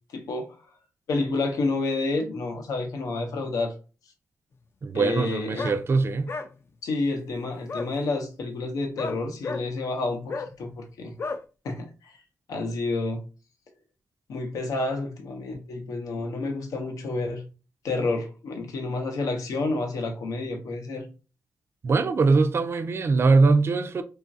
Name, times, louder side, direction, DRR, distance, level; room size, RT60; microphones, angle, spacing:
voice 1, 0.1-0.6 1.1-3.7 4.9-5.7 6.8-11.1 11.6-12.2 12.5-13.2 14.3-17.4 17.8-21.1, left 3 dB, 85° left, 0.6 m, -29 dB
voice 2, 4.8-6.3 21.8-24.0, right 4 dB, 45° right, 0.3 m, -22 dB
sound 1, 5.6-5.8 6.3-6.5 7.7-7.9 8.9-9.6 10.3-10.5 11.2-11.4, left 4 dB, 45° left, 0.3 m, -32 dB
3.0 x 2.4 x 2.5 m
cardioid pair, 65°, 6 cm